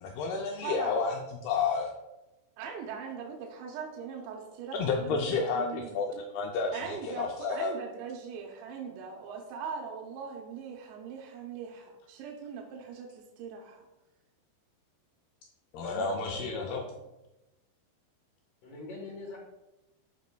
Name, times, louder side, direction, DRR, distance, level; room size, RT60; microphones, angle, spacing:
voice 1, 0.0-2.0 4.7-7.7 15.7-16.8, left 4 dB, 90° left, 1 dB, 2.2 m, -31 dB
voice 2, 0.6-1.0 2.6-6.0 6.7-13.9, right 6 dB, 80° right, 0 dB, 3.0 m, -40 dB
voice 3, 15.8-16.9 18.6-19.4, left 2 dB, 65° left, -2 dB, 2.3 m, -42 dB
12.0 x 5.2 x 2.2 m, 0.99 s
omnidirectional pair, 5.2 m